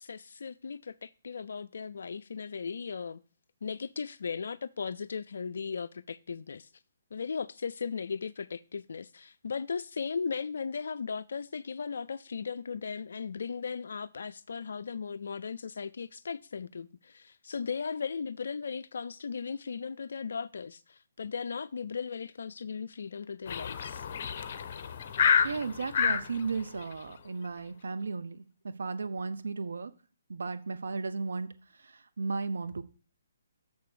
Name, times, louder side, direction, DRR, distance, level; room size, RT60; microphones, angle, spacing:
voice 1, 0.0-3.2 3.6-6.7 7.1-24.0, left 5 dB, 70° left, 0.3 m, -37 dB
sound 1, 23.5-26.3, left 7 dB, 45° left, 0.8 m, -28 dB
voice 2, 25.4-28.4 28.8-29.9 30.3-32.8, right 4 dB, 75° right, 0.8 m, -35 dB
6.8 x 4.6 x 6.8 m
figure-of-eight pair, 140°, 0 cm